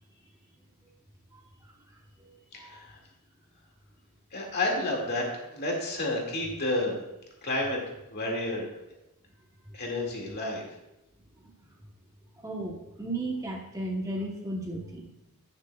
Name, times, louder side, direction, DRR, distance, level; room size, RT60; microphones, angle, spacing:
voice 1, 2.5-2.8 4.3-7.0 7.4-7.8 8.1-8.7 9.7-10.7, left 2 dB, 45° left, -1 dB, 2.2 m, -30 dB
voice 2, 12.4-15.1, right 1 dB, 15° right, 0 dB, 1.0 m, -35 dB
16.5 x 6.8 x 2.3 m, 0.91 s
head